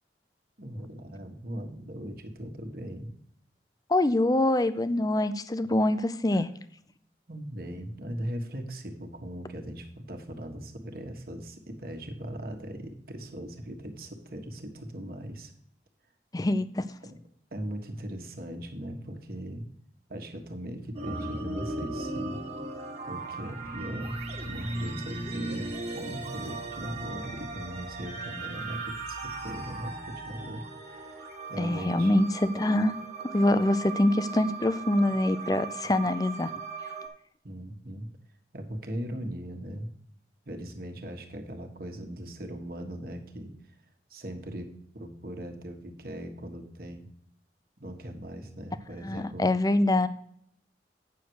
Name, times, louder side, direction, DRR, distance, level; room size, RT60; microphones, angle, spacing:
voice 1, 0.6-3.1 6.3-6.4 7.3-15.5 17.0-17.2 17.5-19.6 20.1-22.4 23.1-24.2 24.5-32.2 37.4-38.1 38.5-39.9 40.4-43.5 44.1-47.1 47.8-49.5, right 1 dB, 55° right, 4 dB, 1.5 m, -39 dB
voice 2, 3.9-6.5 16.3-16.8 31.6-33.0 33.3-36.5 49.0-50.1, left 1 dB, 20° left, 13 dB, 0.5 m, -25 dB
sound 1, 20.9-37.1, right 3 dB, 40° right, 1.6 m, -37 dB
9.2 x 6.7 x 4.7 m, 0.65 s
head